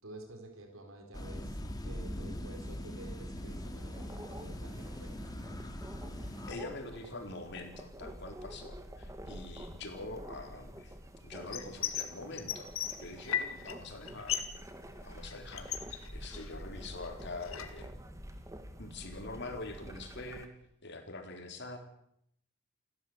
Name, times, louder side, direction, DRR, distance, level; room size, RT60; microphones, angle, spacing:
voice 1, 0.0-1.6 1.8-5.1 7.0-7.1, right 2 dB, 85° right, 4 dB, 4.5 m, -50 dB
sound 1, 1.1-6.5, equal, 20° left, 2.1 m, -41 dB
sound 2, 3.4-20.5, equal, 15° right, 1.8 m, -48 dB
voice 2, 6.5-10.9 11.2-12.7 13.0-14.3 15.0-17.9 18.8-20.5 20.8-21.8, left 2 dB, 55° left, 5 dB, 4.1 m, -44 dB
sound 3, 11.5-12.1 12.4-13.7 14.0-14.6 14.9-16.7 17.0-17.8, left 10 dB, 85° left, 2.3 m, -36 dB
29.0 x 12.5 x 8.0 m, 0.75 s
head